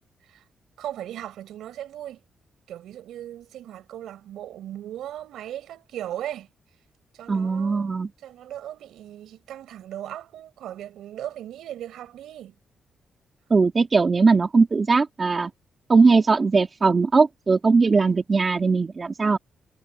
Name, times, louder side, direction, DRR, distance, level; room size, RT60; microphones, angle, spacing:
voice 1, 0.8-2.2 2.7-6.5 7.1-7.9 8.2-12.6, right 11 dB, 85° right, 5.0 m, -37 dB
voice 2, 7.3-8.1 13.5-15.5 15.9-19.4, right 4 dB, 40° right, 2.1 m, -19 dB
cardioid pair, 65°, 0 cm